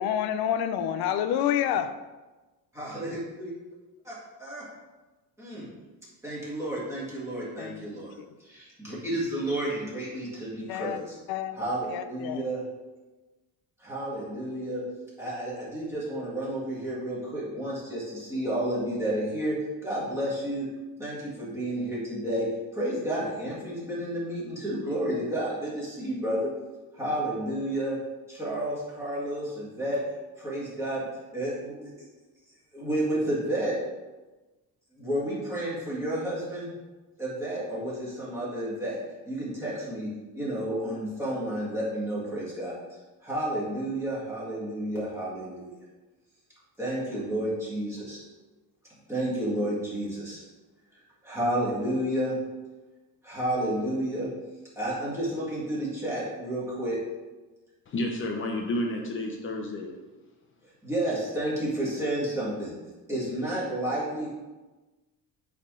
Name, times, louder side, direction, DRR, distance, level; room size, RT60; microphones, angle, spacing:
voice 1, 0.0-1.9 7.6-8.0 10.7-11.0 11.3-11.6 11.9-12.4, left 10 dB, 80° left, 10 dB, 0.6 m, -28 dB
voice 2, 2.8-3.5 4.0-4.7 5.4-5.7 6.2-8.1 8.4-11.2 11.6-12.6 13.8-14.8 15.2-19.6 19.8-20.7 21.0-22.5 22.7-26.5 26.9-28.0 28.3-30.0 30.4-31.0 31.3-32.1 32.7-33.7 34.9-36.7 37.2-39.0 39.3-40.1 40.3-42.7 43.2-45.7 46.8-48.2 49.1-50.4 51.2-52.4 53.2-54.3 54.8-57.0 60.8-62.7 63.1-64.3, right 1 dB, 5° right, -8 dB, 1.8 m, -31 dB
voice 3, 57.9-59.9, left 1 dB, 35° left, 2 dB, 0.7 m, -30 dB
8.3 x 3.6 x 3.7 m, 1.2 s
cardioid pair, 180°, 37 cm